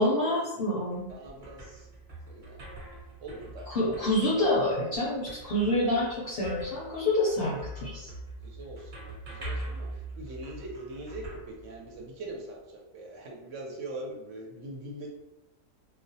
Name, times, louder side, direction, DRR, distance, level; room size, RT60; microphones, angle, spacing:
voice 1, 0.0-1.1 3.7-8.1, left 1 dB, 60° left, -5 dB, 0.6 m, -27 dB
sound 1, 0.8-12.3, right 1 dB, 35° right, 0.8 m, -43 dB
voice 2, 1.1-1.8 2.3-2.6 3.2-4.2 8.0-8.1 8.4-9.9 10.2-11.2 11.6-15.1, right 2 dB, 70° right, -1 dB, 0.9 m, -42 dB
2.3 x 2.0 x 2.6 m, 0.92 s
omnidirectional pair, 1.4 m